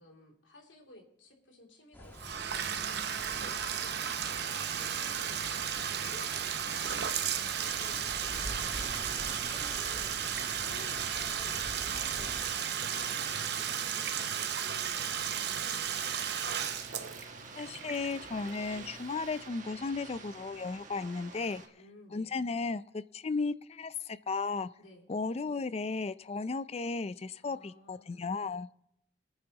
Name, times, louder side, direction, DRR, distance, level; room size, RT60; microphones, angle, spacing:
voice 1, 0.0-8.7 9.2-10.2 10.6-16.1 21.8-22.3 24.8-25.1 27.4-28.5, left 2 dB, 85° left, 1 dB, 2.8 m, -55 dB
sound 1, 1.9-12.5, equal, 10° left, 1.5 m, -47 dB
Bathtub (filling or washing), 2.1-18.9, right 8 dB, 60° right, 0.8 m, -34 dB
sound 2, 2.3-21.7, right 4 dB, 40° right, 1.3 m, -49 dB
voice 2, 17.5-21.6 22.1-24.7 25.1-28.7, left 4 dB, 35° left, 16 dB, 0.4 m, -35 dB
22.0 x 9.8 x 2.9 m, 0.76 s
head